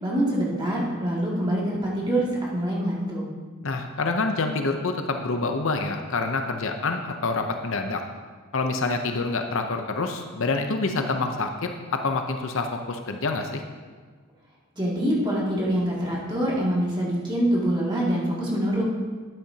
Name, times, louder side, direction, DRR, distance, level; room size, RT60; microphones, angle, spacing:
voice 1, 0.0-2.2 2.5-3.2 14.8-18.8, right 1 dB, 20° right, -6 dB, 2.3 m, -25 dB
voice 2, 3.6-8.0 8.5-13.6, left 3 dB, 60° left, 5 dB, 0.7 m, -27 dB
12.0 x 8.9 x 2.8 m, 1.5 s
head